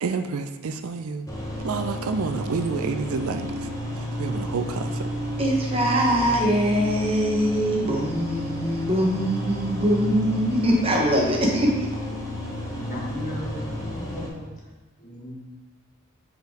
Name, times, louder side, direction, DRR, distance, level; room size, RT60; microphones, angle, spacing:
voice 1, 0.0-1.3 1.6-3.7 4.0-5.1, right 4 dB, 80° right, 8 dB, 0.4 m, -29 dB
sound 1, 1.3-14.3, equal, 15° left, 1.0 m, -32 dB
voice 2, 5.4-11.7, equal, 25° right, -1 dB, 0.9 m, -22 dB
voice 3, 12.7-14.5 15.0-15.4, equal, 35° left, -4 dB, 1.4 m, -36 dB
5.0 x 4.7 x 4.6 m, 1.2 s
head